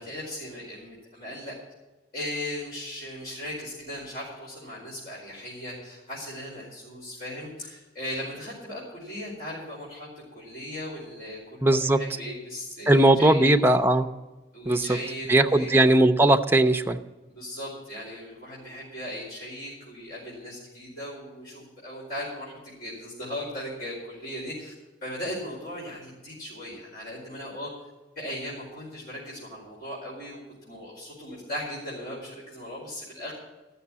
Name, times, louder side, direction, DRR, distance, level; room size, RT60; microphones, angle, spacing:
voice 1, 0.0-1.5 2.1-13.5 14.5-15.8 17.3-24.7 25.0-27.7 28.1-33.3, left 1 dB, 55° left, -7 dB, 4.8 m, -38 dB
voice 2, 11.6-12.0 12.9-14.1 14.7-15.0 15.3-17.0, right 1 dB, 10° right, 6 dB, 0.6 m, -19 dB
13.5 x 6.9 x 9.7 m, 1.1 s
head